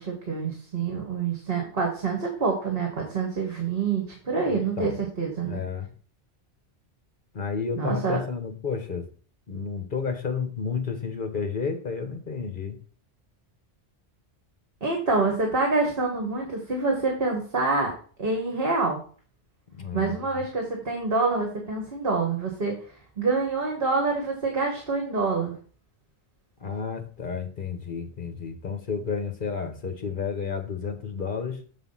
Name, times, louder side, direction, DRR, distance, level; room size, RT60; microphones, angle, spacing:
voice 1, 0.0-5.6 7.8-8.2 14.8-17.9 18.2-19.0 19.9-22.7 23.2-25.5, right 4 dB, 60° right, 1 dB, 1.7 m, -26 dB
voice 2, 4.5-5.0 5.5-5.9 7.3-9.1 9.5-12.8 19.7-20.4 26.6-31.6, left 5 dB, 50° left, 6 dB, 1.4 m, -31 dB
7.4 x 4.1 x 5.5 m, 0.42 s
omnidirectional pair, 1.1 m